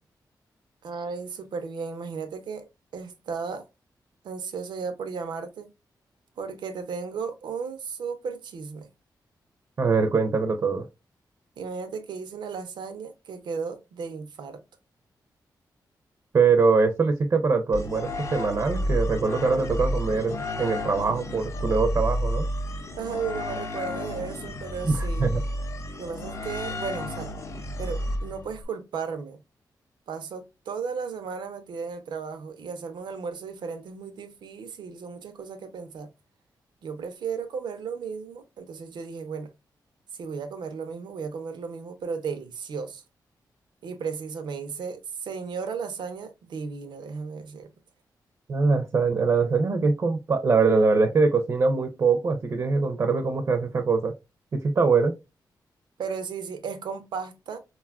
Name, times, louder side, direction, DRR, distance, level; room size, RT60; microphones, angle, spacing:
voice 1, 0.8-2.7 2.9-3.6 4.2-5.7 6.4-8.9 11.6-14.6 23.0-25.3 26.0-27.3 27.8-29.4 30.1-36.1 36.8-39.5 40.2-43.0 43.8-47.7 56.0-57.6, right 5 dB, 90° right, 0.6 m, -35 dB
voice 2, 9.8-10.9 16.3-22.5 24.8-25.4 48.5-54.1 54.7-55.1, right 4 dB, 45° right, 0.5 m, -23 dB
sound 1, 17.7-28.6, equal, 40° left, 0.5 m, -31 dB
3.9 x 2.3 x 2.2 m
wide cardioid pair, 115°, 8 cm